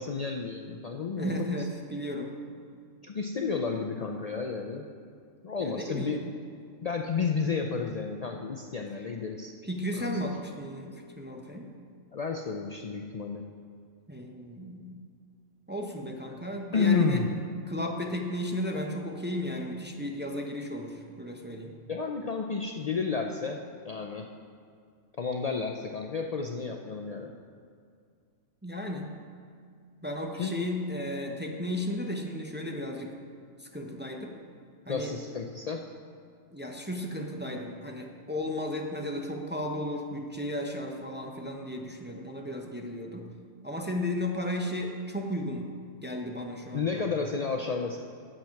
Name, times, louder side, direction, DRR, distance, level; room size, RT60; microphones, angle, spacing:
voice 1, 0.0-1.6 3.0-4.9 5.4-6.3 6.8-9.5 10.0-10.3 12.1-13.4 16.3-16.4 16.7-17.3 21.9-24.3 25.2-27.3 30.4-30.6 34.9-35.8 46.7-48.0, left 5 dB, 80° left, 2 dB, 0.3 m, -31 dB
voice 2, 1.2-2.3 5.6-6.2 9.6-11.7 14.1-14.9 15.7-17.3 17.7-21.7 28.6-29.1 30.0-33.1 33.6-34.4 34.9-35.1 36.5-43.3 43.6-45.7 46.0-47.0, left 1 dB, 10° right, 1 dB, 0.5 m, -34 dB
8.9 x 7.5 x 5.8 m, 2.3 s
omnidirectional pair, 1.4 m